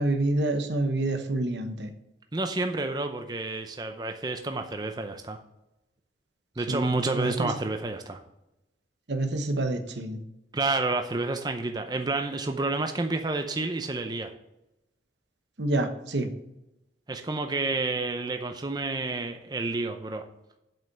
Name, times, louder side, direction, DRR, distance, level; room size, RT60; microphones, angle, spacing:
voice 1, 0.0-1.9 6.7-6.8 7.1-7.5 9.1-10.2 15.6-16.3, right 2 dB, 75° right, 7 dB, 1.1 m, -27 dB
voice 2, 2.3-5.4 6.6-8.2 10.5-14.3 17.1-20.2, right 3 dB, 25° right, 6 dB, 0.6 m, -29 dB
7.6 x 5.3 x 7.2 m, 0.90 s
head